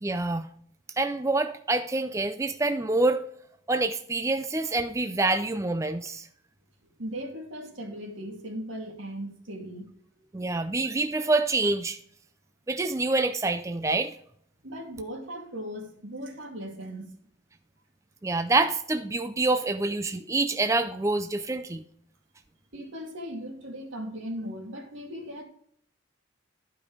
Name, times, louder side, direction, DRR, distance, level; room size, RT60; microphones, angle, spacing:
voice 1, 0.0-0.5 1.0-3.2 3.7-6.3 10.3-12.0 12.7-14.1 18.2-21.8, right 2 dB, 15° right, 0.4 m, -26 dB
voice 2, 7.0-9.9 14.6-17.1 22.7-25.4, equal, 80° right, 2.4 m, -38 dB
12.0 x 5.2 x 4.7 m
head